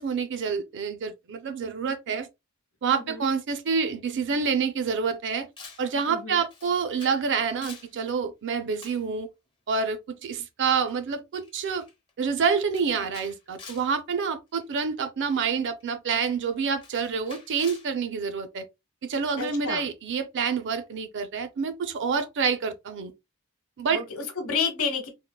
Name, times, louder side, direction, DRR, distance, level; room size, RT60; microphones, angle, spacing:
voice 1, 0.0-2.3 2.8-5.5 5.8-9.3 9.7-11.8 12.2-18.7 19.0-23.1 23.8-24.0, right 5 dB, 55° right, 0.4 m, -27 dB
voice 2, 2.9-3.2 6.1-6.4 19.4-19.8 23.9-25.1, left 5 dB, 70° left, 0.9 m, -30 dB
Camera, 5.6-5.9 6.5-7.2 7.5-7.9 8.8-9.1 10.2-10.4 10.9-11.0 11.4-11.5 11.8-12.1 12.7-13.9 14.5-14.8 15.8-15.9 16.8-17.9, left 4 dB, 20° left, 0.8 m, -47 dB
3.6 x 2.2 x 2.2 m
head